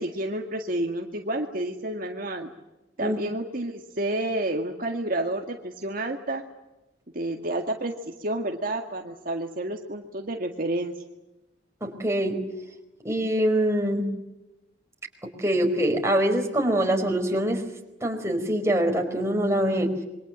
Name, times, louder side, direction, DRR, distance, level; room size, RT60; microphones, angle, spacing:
voice 1, 0.0-2.5 3.0-6.4 7.1-10.9, right 1 dB, 50° right, 3 dB, 2.0 m, -30 dB
voice 2, 11.8-12.4 13.0-14.1 15.2-17.6 18.0-19.9, right 1 dB, 15° right, 2 dB, 4.7 m, -24 dB
27.5 x 23.5 x 7.5 m, 0.98 s
head